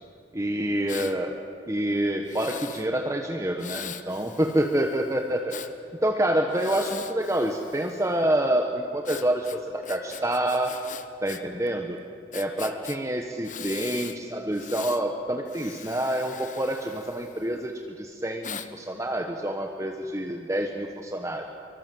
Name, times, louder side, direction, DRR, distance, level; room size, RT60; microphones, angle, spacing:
voice 1, 0.3-1.3 1.7-5.6 6.0-10.7 11.2-12.0 12.3-21.5, right 1 dB, 15° right, 3 dB, 1.2 m, -27 dB
Breathing, 0.9-1.2 2.2-2.9 3.6-5.7 6.5-8.1 9.0-11.4 11.7-11.8 12.3-13.0 13.4-14.2 14.5-15.0 15.5-17.6 18.4-18.7, left 7 dB, 45° left, 1.0 m, -41 dB
24.0 x 23.5 x 7.8 m, 2.4 s
head